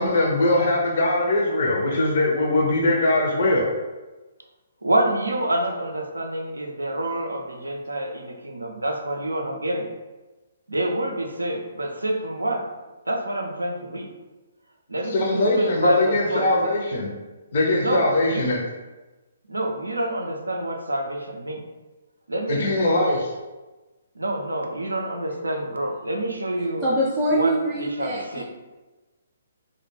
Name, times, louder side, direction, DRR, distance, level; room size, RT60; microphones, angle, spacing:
voice 1, 0.0-3.7 15.1-17.1 17.5-18.6 22.5-23.2, left 2 dB, 55° left, -2 dB, 0.5 m, -21 dB
voice 2, 4.8-9.9 10.7-12.7 13.1-14.1 14.9-16.7 17.8-18.5 19.5-21.6 22.3-23.0 24.2-26.9 27.3-28.4, right 1 dB, 85° right, 3 dB, 0.3 m, -27 dB
voice 3, 26.8-28.4, right 1 dB, 10° right, -8 dB, 0.5 m, -23 dB
2.2 x 2.1 x 3.0 m, 1.2 s
figure-of-eight pair, 130°, 0 cm